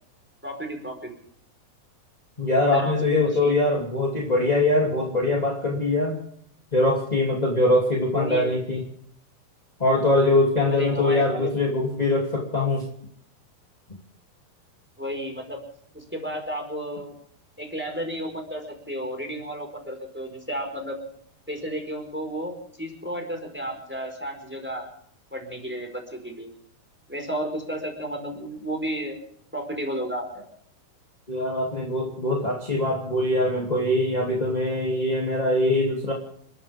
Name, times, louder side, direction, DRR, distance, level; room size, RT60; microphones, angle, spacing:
voice 1, 0.4-1.1 2.7-3.6 8.1-8.5 10.7-11.5 15.0-15.6 15.9-17.1 17.6-21.0 21.5-22.5 22.8-24.9 25.3-26.5 27.1-29.1 29.5-30.4, equal, 5° right, 3 dB, 4.3 m, -32 dB
voice 2, 2.4-6.2 6.7-8.8 9.8-12.9 31.3-36.1, left 2 dB, 15° left, -2 dB, 2.0 m, -22 dB
29.5 x 14.0 x 3.5 m, 0.67 s
omnidirectional pair, 4.7 m